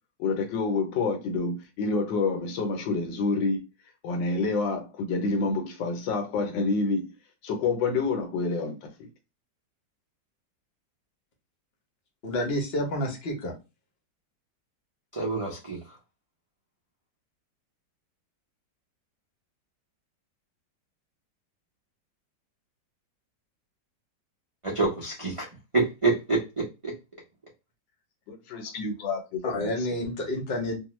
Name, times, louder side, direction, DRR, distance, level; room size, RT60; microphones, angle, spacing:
voice 1, 0.2-3.7 4.0-7.1 7.4-9.1 28.3-29.7, left 3 dB, 80° left, 1.4 m, -28 dB
voice 2, 12.2-13.5 29.4-30.8, left 1 dB, 50° left, 0.8 m, -29 dB
voice 3, 15.2-15.8 24.6-25.5 25.7-26.9, right 3 dB, 45° right, 0.4 m, -27 dB
3.0 x 2.2 x 3.0 m
omnidirectional pair, 2.0 m